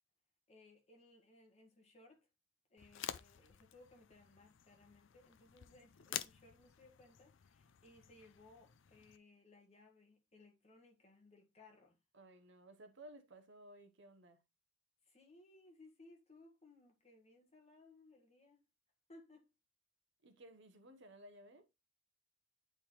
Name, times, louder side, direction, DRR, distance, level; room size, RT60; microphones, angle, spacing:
voice 1, 0.5-2.3 2.7-12.0 15.0-18.6 19.1-19.5, left 2 dB, 30° left, 1.8 m, -63 dB
sound 1, 2.8-9.2, left 10 dB, 60° left, 0.4 m, -50 dB
voice 2, 12.1-14.4 20.2-21.7, right 1 dB, 60° right, 1.0 m, -58 dB
8.9 x 4.4 x 3.1 m
head